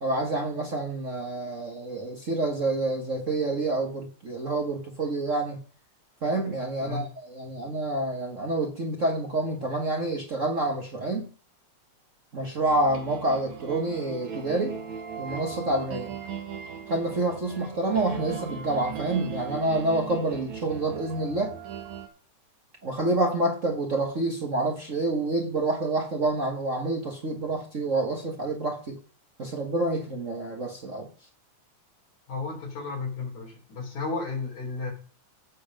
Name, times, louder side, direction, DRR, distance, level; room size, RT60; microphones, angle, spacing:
voice 1, 0.0-5.6 6.2-11.3 12.3-14.8 15.2-16.1 16.9-21.6 22.8-29.0 29.4-31.1, right 2 dB, 55° right, 0.8 m, -28 dB
sound 1, 12.6-22.1, right 7 dB, 75° right, 3.0 m, -38 dB
voice 2, 32.3-34.9, left 4 dB, 80° left, 4.9 m, -33 dB
16.0 x 5.5 x 5.2 m
omnidirectional pair, 3.3 m